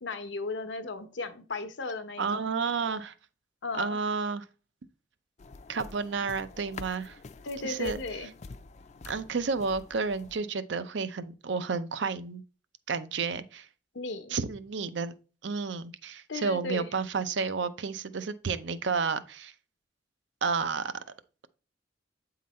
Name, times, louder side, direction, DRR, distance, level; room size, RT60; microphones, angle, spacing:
voice 1, 0.0-2.5 3.6-4.0 7.4-8.3 13.9-14.4 16.3-16.9, left 3 dB, 80° left, 0.9 m, -36 dB
voice 2, 2.2-3.1 3.7-4.4 5.7-7.2 7.6-8.0 9.0-12.4 12.9-13.7 14.3-15.2 15.4-19.5 20.4-20.9, right 5 dB, 75° right, 0.6 m, -31 dB
sound 1, 5.4-10.4, left 3 dB, 40° left, 0.4 m, -47 dB
8.4 x 3.9 x 4.2 m
head